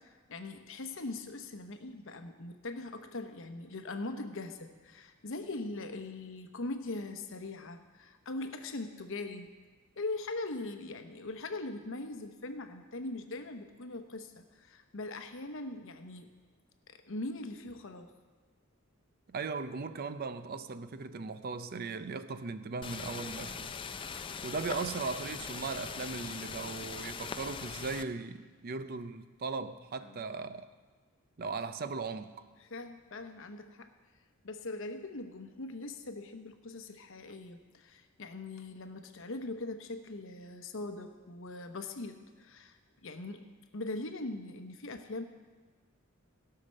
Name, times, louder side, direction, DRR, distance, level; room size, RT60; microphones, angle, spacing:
voice 1, 0.0-9.5 10.0-16.3 16.9-18.1 30.0-30.2 32.6-33.9 34.4-45.2, left 2 dB, 65° left, 7 dB, 0.9 m, -41 dB
voice 2, 19.3-23.7 24.4-30.7 31.4-32.3, right 4 dB, 45° right, 11 dB, 0.5 m, -38 dB
sound 1, 22.8-28.0, left 5 dB, 25° left, 0.4 m, -41 dB
17.0 x 5.7 x 6.5 m, 1.4 s
head